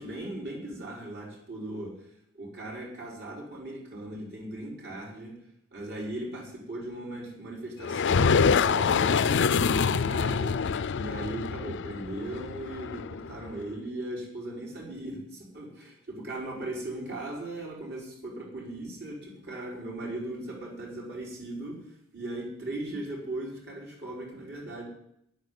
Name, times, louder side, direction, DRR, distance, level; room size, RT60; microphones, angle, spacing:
voice 1, 0.0-2.1 2.3-5.3 5.7-24.8, right 1 dB, 55° right, -3 dB, 4.7 m, -38 dB
sound 1, 7.8-13.5, left 5 dB, 55° left, 0.5 m, -25 dB
10.5 x 8.9 x 8.3 m, 0.75 s
head